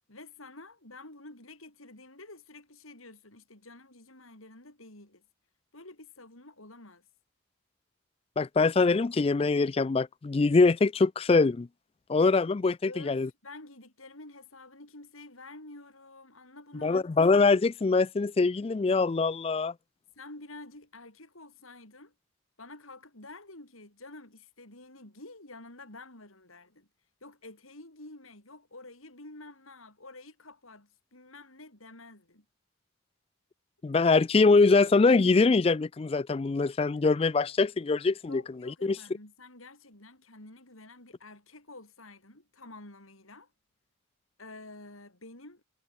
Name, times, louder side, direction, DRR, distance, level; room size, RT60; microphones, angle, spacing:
voice 1, 0.1-5.3 5.7-7.1 12.8-17.1 20.2-22.1 22.6-26.9 27.2-32.5 38.3-43.5 44.4-45.6, left 2 dB, 85° left, 7.0 m, -49 dB
voice 2, 8.4-11.7 12.1-13.3 16.8-19.7 33.8-39.0, left 3 dB, 30° left, 0.3 m, -23 dB
head